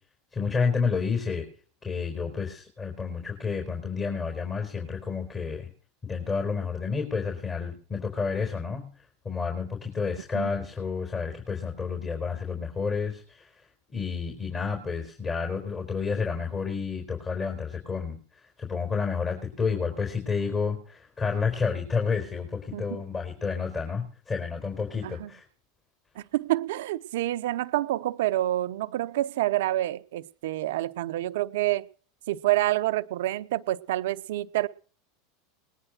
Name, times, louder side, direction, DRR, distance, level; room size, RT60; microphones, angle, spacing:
voice 1, 0.3-1.4 1.8-5.7 6.0-8.9 9.2-13.5 13.9-18.2 18.6-25.4, left 5 dB, 30° left, 4.5 m, -30 dB
voice 2, 22.7-23.0 25.0-25.3 26.2-31.9 32.3-34.7, right 15 dB, 70° right, 0.7 m, -28 dB
19.5 x 10.0 x 6.6 m
hypercardioid pair, 95°, 0 cm